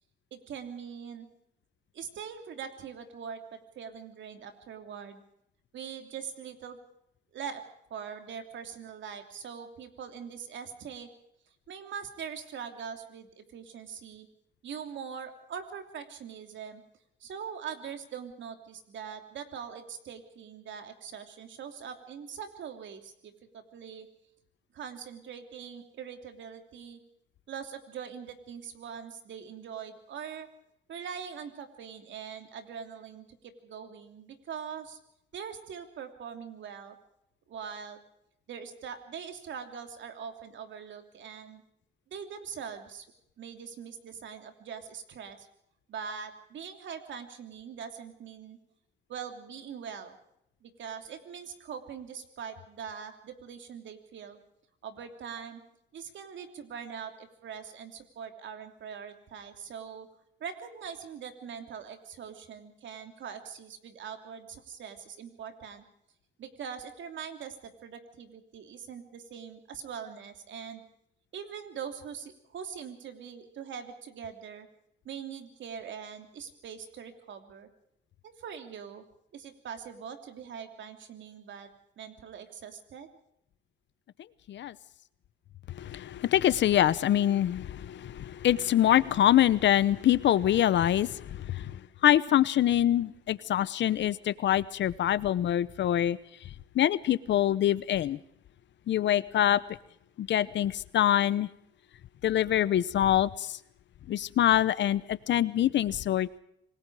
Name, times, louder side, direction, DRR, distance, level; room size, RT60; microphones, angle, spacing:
voice 1, 0.3-1.3 1.9-5.2 5.7-6.8 7.3-7.6 7.9-11.1 11.7-14.3 14.6-16.8 17.2-24.1 24.7-27.0 27.5-30.5 30.9-35.0 35.3-37.0 37.5-38.0 38.5-41.6 42.1-43.0 43.4-45.5 45.9-48.6 49.1-50.2 50.6-54.4 54.8-55.6 55.9-60.1 60.4-65.8 66.4-70.8 71.3-74.7 75.0-77.7 78.2-81.7 82.0-83.1, right 7 dB, 70° right, 6 dB, 3.0 m, -42 dB
voice 2, 85.7-91.7 92.0-96.2 96.7-98.2 98.9-99.6 100.2-101.5 102.2-103.6 104.1-106.4, left 11 dB, 65° left, 18 dB, 0.9 m, -25 dB
26.5 x 20.0 x 4.9 m, 0.77 s
cardioid pair, 90°, 20 cm